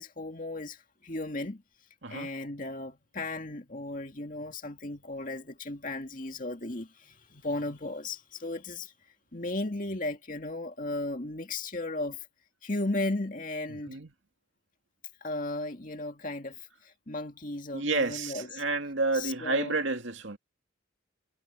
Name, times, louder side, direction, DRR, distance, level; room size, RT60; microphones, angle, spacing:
voice 1, 0.0-1.6 2.1-8.9 9.3-12.3 12.6-14.0 15.2-18.6 19.1-19.7, left 2 dB, 40° left, 2.3 m, -35 dB
voice 2, 13.7-14.1 17.7-20.4, right 3 dB, 70° right, 2.3 m, -30 dB
head